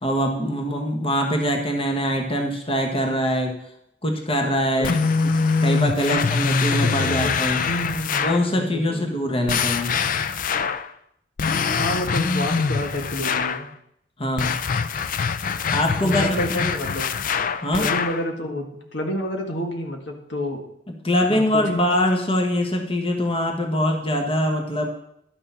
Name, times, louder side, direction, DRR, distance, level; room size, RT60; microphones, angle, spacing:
voice 1, 0.0-3.6 4.0-5.0 5.2-5.3 5.6-7.6 8.2-9.9 14.2-14.6 15.7-16.7 17.6-17.9 20.9-24.9, equal, 30° left, 3 dB, 1.3 m, -23 dB
sound 1, 4.8-8.5 9.5-10.9 11.4-13.7 14.4-18.2, left 5 dB, 50° left, 0.5 m, -24 dB
voice 2, 6.1-7.3 7.7-9.5 11.8-13.7 16.0-17.1 17.8-20.6 21.3-21.8, equal, 85° left, 3 dB, 1.8 m, -29 dB
11.5 x 6.7 x 5.7 m, 0.75 s
head